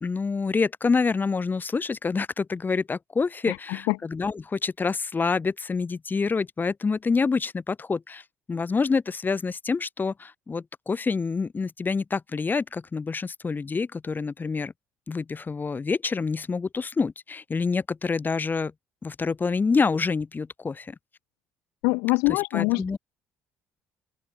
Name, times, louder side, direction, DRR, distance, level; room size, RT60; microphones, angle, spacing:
voice 1, 0.0-8.2 8.5-14.7 15.1-18.7 19.0-21.0 22.3-23.0, left 4 dB, 30° left, 2.1 m, -27 dB
voice 2, 3.5-4.0 21.8-22.8, left 28 dB, 80° left, 0.5 m, -24 dB
open air
hypercardioid pair, 65°, 6 cm